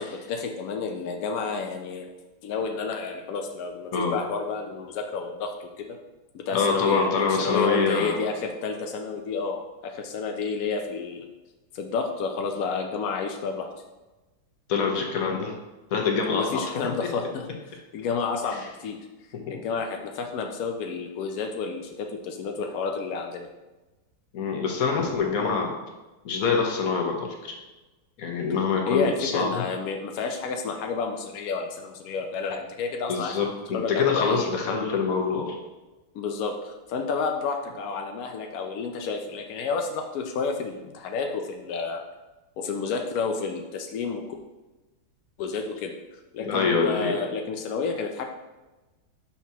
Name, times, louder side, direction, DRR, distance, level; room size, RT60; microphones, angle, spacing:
voice 1, 0.0-2.1 2.4-6.0 6.3-11.3 11.7-13.7 16.3-17.5 17.9-19.0 19.5-23.5 28.9-33.5 33.7-34.5 36.1-42.0 42.6-44.4 45.4-45.9 46.3-48.2, left 5 dB, 80° left, 3 dB, 0.8 m, -30 dB
voice 2, 6.5-8.2 14.7-15.5 15.9-16.6 18.5-18.7 19.5-19.6 24.3-25.7 26.2-27.5 28.2-29.6 33.1-35.5 46.4-47.1, left 5 dB, 55° left, 1 dB, 1.1 m, -25 dB
5.9 x 5.7 x 2.8 m, 1.1 s
omnidirectional pair, 2.2 m